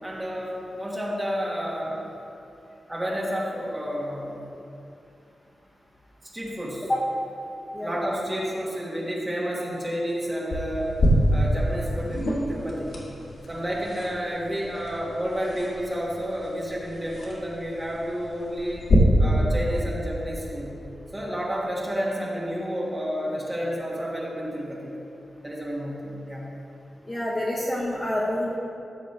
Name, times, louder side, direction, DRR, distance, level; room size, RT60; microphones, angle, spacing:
voice 1, 0.0-2.0 2.9-4.4 6.3-6.9 7.8-10.9 11.3-13.0 13.5-18.8 19.2-20.7 21.1-24.9 25.4-26.5, equal, 15° right, -5 dB, 1.6 m, -30 dB
sound 1, 10.5-18.9, left 1 dB, 70° left, 1.9 m, -28 dB
voice 2, 27.1-28.6, left 1 dB, 20° left, -5 dB, 1.1 m, -27 dB
14.5 x 6.7 x 3.3 m, 2.7 s
wide cardioid pair, 175°, 0 cm